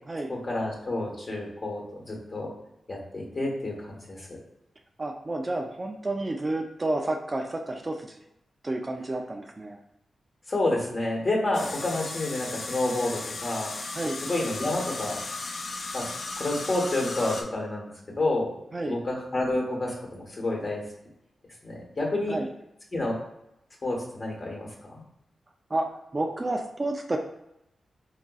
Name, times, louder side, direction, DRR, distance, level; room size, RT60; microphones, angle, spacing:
voice 1, 0.3-2.5 2.9-4.2 10.5-13.7 14.3-15.2 15.9-16.1 16.4-17.9 18.2-18.5 18.8-20.8 21.6-22.4 22.9-23.2 23.8-24.7, left 2 dB, 40° left, -2 dB, 1.1 m, -29 dB
voice 2, 5.0-8.2 8.6-9.8 13.9-14.2 18.7-19.0 22.3-22.5 25.7-25.9 26.1-27.2, right 2 dB, 30° right, 3 dB, 0.3 m, -30 dB
sound 1, 11.5-17.4, left 3 dB, 55° left, 0.4 m, -36 dB
3.7 x 2.4 x 2.3 m, 0.84 s
cardioid pair, 75°, 0 cm